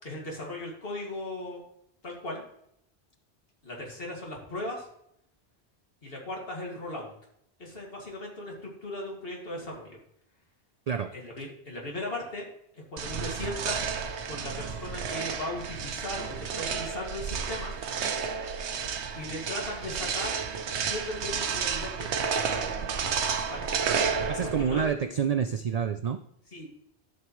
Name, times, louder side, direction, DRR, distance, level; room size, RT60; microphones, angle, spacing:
voice 1, 0.0-1.6 2.0-2.4 3.6-4.9 6.0-7.1 7.6-10.0 11.1-12.5 12.7-13.9 14.3-17.7 19.1-20.4 20.9-22.2 23.5-23.7 24.6-24.9 26.5-26.8, left 1 dB, 60° left, -1 dB, 2.4 m, -37 dB
sound 1, 13.0-24.9, right 6 dB, 90° right, 1.1 m, -31 dB
voice 2, 24.3-26.2, right 7 dB, 55° right, 9 dB, 0.4 m, -28 dB
12.5 x 6.4 x 3.1 m, 0.74 s
omnidirectional pair, 1.1 m